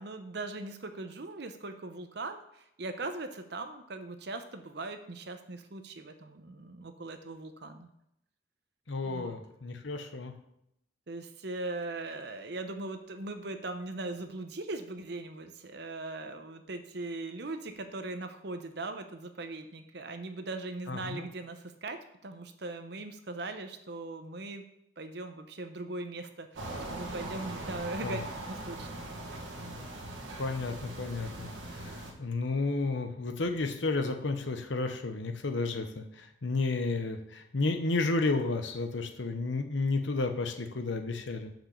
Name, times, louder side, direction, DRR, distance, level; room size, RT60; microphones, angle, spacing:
voice 1, 0.0-7.9 9.0-9.4 11.1-22.0 22.2-24.6 25.0-28.2 28.5-29.2, right 2 dB, 55° right, 7 dB, 0.8 m, -40 dB
voice 2, 8.9-10.3 20.9-21.3 28.0-28.2 30.4-41.5, left 3 dB, 70° left, 6 dB, 0.9 m, -32 dB
sound 1, 26.6-32.1, right 2 dB, 85° right, 1.6 m, -40 dB
6.1 x 5.1 x 6.7 m, 0.79 s
head